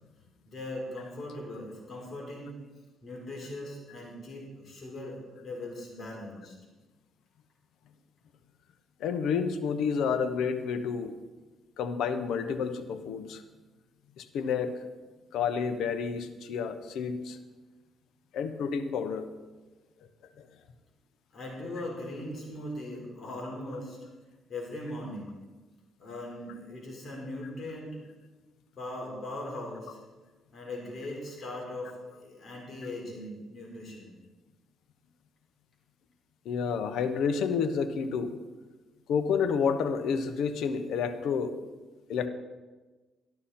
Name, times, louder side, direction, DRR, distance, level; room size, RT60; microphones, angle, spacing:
voice 1, 0.5-2.5 3.0-6.5 21.3-24.0 24.5-25.4 26.0-27.9 28.8-30.0 30.5-34.2, left 1 dB, 45° left, -2 dB, 4.5 m, -39 dB
voice 2, 9.0-11.1 11.8-13.4 14.2-14.8 15.3-17.4 18.3-19.3 36.4-38.4 39.1-41.6 42.1-42.3, left 6 dB, 80° left, 9 dB, 1.0 m, -30 dB
13.0 x 12.0 x 4.3 m, 1.2 s
cardioid pair, 90°, 0 cm